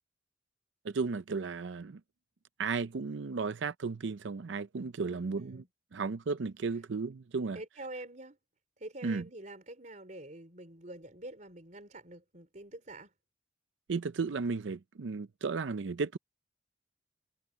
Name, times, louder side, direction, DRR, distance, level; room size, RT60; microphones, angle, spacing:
voice 1, 0.8-2.0 2.6-5.6 5.9-7.6 9.0-9.2 13.9-16.2, right 4 dB, 80° right, 0.5 m, -34 dB
voice 2, 5.0-5.7 7.5-8.4 8.8-13.1, right 1 dB, 40° right, 4.1 m, -46 dB
head